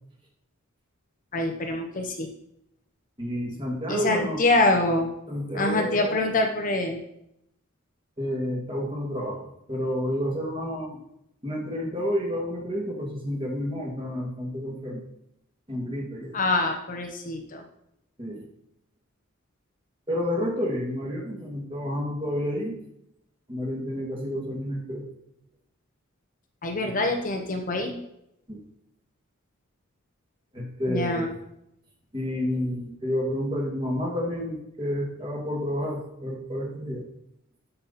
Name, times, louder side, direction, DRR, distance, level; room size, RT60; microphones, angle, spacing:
voice 1, 1.3-2.3 3.9-5.1 5.5-7.0 16.3-17.6 26.6-27.9 30.9-31.3, left 2 dB, 40° left, 3 dB, 1.0 m, -25 dB
voice 2, 3.2-4.4 5.3-6.3 8.2-9.4 9.7-11.0 11.4-15.1 15.7-16.4 18.2-18.4 20.1-22.8 23.5-25.1 28.5-28.6 30.5-31.3 32.1-37.1, equal, 25° right, -2 dB, 2.4 m, -30 dB
12.5 x 5.6 x 4.2 m, 0.78 s
head